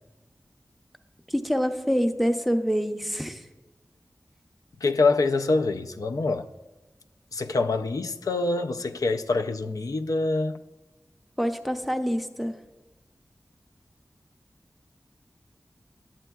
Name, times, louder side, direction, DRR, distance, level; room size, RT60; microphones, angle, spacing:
voice 1, 1.3-3.5 11.4-12.6, equal, ahead, 0.5 m, -26 dB
voice 2, 4.8-6.5 7.3-10.6, left 3 dB, 75° left, 0.4 m, -25 dB
11.0 x 8.1 x 2.3 m
wide cardioid pair, 55°, 6 cm